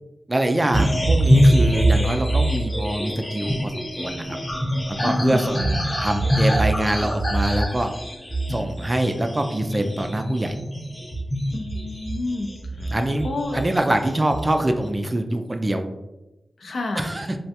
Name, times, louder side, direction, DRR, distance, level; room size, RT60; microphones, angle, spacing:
voice 1, 0.3-4.2 4.9-7.9 8.5-10.5 12.7-15.8 16.9-17.4, right 1 dB, 30° right, 6 dB, 0.3 m, -24 dB
sound 1, 0.7-13.8 14.1-14.8, equal, 25° left, 0.7 m, -23 dB
voice 2, 5.0-5.5 11.5-12.5 13.2-13.6 16.6-17.1, left 2 dB, 75° left, 3 dB, 0.4 m, -29 dB
3.3 x 2.3 x 2.7 m, 1.0 s
cardioid pair, 65°, 0 cm